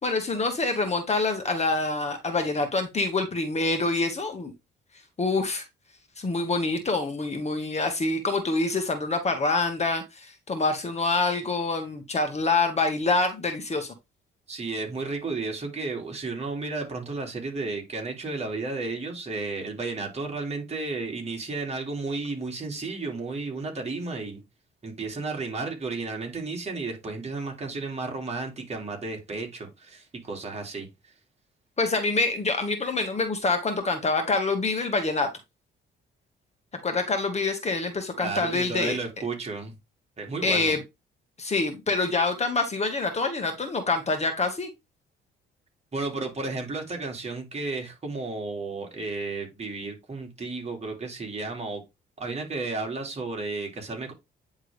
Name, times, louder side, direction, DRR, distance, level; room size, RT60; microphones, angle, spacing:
voice 1, 0.0-4.5 5.2-5.6 6.2-13.9 31.8-35.3 36.8-39.0 40.4-40.8 41.4-44.7, left 3 dB, 35° left, 1.6 m, -26 dB
voice 2, 14.5-24.4 24.8-30.9 38.2-39.7 40.2-40.8 45.9-51.8 52.2-54.1, right 3 dB, 35° right, 2.8 m, -33 dB
9.4 x 3.6 x 3.4 m
cardioid pair, 90°, 20 cm